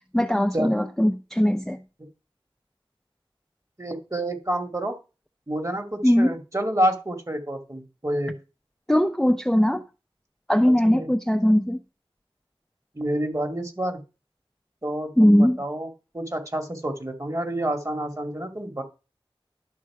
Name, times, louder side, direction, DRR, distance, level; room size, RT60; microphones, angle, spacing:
voice 1, 0.1-1.8 6.0-6.3 8.9-9.8 10.5-11.8 15.2-15.6, equal, 5° left, 0.6 m, -20 dB
voice 2, 3.8-4.9 5.5-8.4 10.6-11.1 12.9-14.0 14.8-15.9 16.1-18.8, right 1 dB, 35° right, 2.2 m, -28 dB
11.5 x 6.5 x 4.8 m
wide cardioid pair, 50°, 10 cm